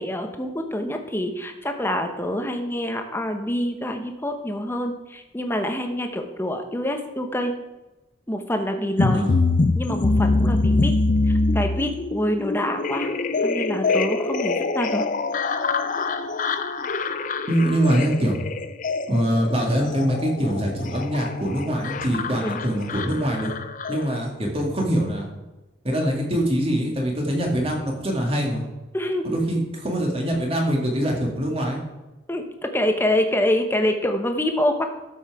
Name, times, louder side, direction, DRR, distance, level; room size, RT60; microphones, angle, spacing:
voice 1, 0.0-7.5 8.3-9.2 9.7-10.9 11.2-13.1 13.4-15.1 22.4-22.6 28.9-29.3 32.3-34.8, left 1 dB, 10° left, 5 dB, 0.9 m, -26 dB
sound 1, 9.0-24.2, left 3 dB, 40° left, 0.5 m, -24 dB
voice 2, 9.1-9.4 17.5-18.3 19.1-23.5 23.9-25.3 25.8-28.6 29.2-31.8, equal, 30° right, 0 dB, 2.0 m, -23 dB
13.0 x 5.7 x 4.8 m, 1.1 s
head